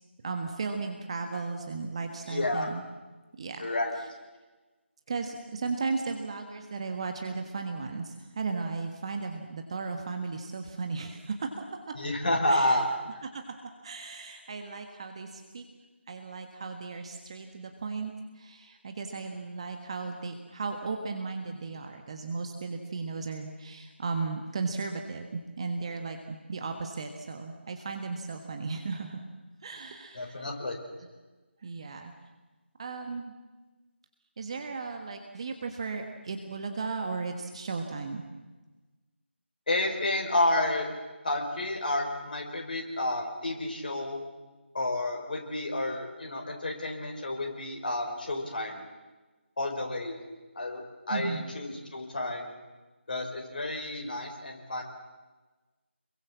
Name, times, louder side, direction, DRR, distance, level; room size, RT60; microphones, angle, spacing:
voice 1, 0.2-2.8 3.4-3.7 4.0-4.1 5.1-11.5 11.9-12.0 12.5-12.8 13.2-13.4 13.8-15.6 16.1-29.2 29.6-30.5 31.6-32.1 32.8-33.3 34.4-38.2 51.1-51.4, right 4 dB, 30° right, 5 dB, 1.6 m, -35 dB
voice 2, 2.3-2.7 3.6-4.0 11.9-12.9 30.1-30.8 39.7-40.9 41.2-44.3 44.7-48.8 49.6-50.2 50.5-52.5 53.1-54.8, left 1 dB, 45° left, 1 dB, 4.9 m, -30 dB
28.0 x 22.5 x 7.5 m, 1.2 s
figure-of-eight pair, 160°, 7 cm